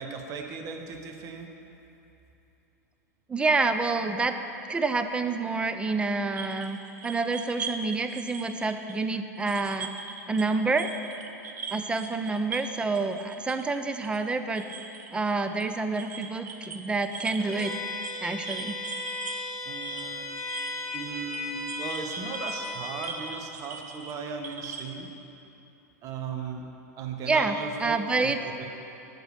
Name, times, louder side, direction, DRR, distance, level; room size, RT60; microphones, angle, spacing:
voice 1, 0.0-1.5 19.6-20.3 20.9-25.1 26.0-26.6 27.0-28.3 28.6-28.7, right 5 dB, 40° right, 3 dB, 0.8 m, -37 dB
voice 2, 3.3-4.4 4.7-6.8 7.0-9.9 10.3-10.9 11.7-14.6 15.1-18.8 27.3-28.4, right 3 dB, 10° right, 8 dB, 0.4 m, -28 dB
sound 1, 6.3-10.5 10.7-25.0, right 5 dB, 80° right, 0.6 m, -41 dB
Bowed string instrument, 17.4-23.2, left 3 dB, 5° left, 1.8 m, -36 dB
6.6 x 4.8 x 6.4 m, 3.0 s
hypercardioid pair, 105°, 9 cm